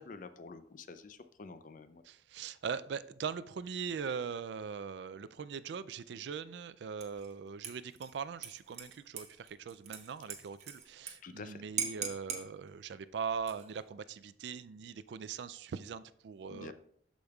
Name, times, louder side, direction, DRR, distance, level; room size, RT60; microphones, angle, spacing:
voice 1, 0.0-2.0 11.2-11.6 16.5-16.7, left 4 dB, 45° left, 0.5 m, -48 dB
voice 2, 2.0-16.7, right 6 dB, 75° right, 0.4 m, -41 dB
Dishes pots and pans / Liquid, 7.0-7.3 7.6-11.1 11.4-11.5 11.8-12.4 13.3-13.8, right 7 dB, 40° right, 0.9 m, -41 dB
13.5 x 5.1 x 2.3 m
head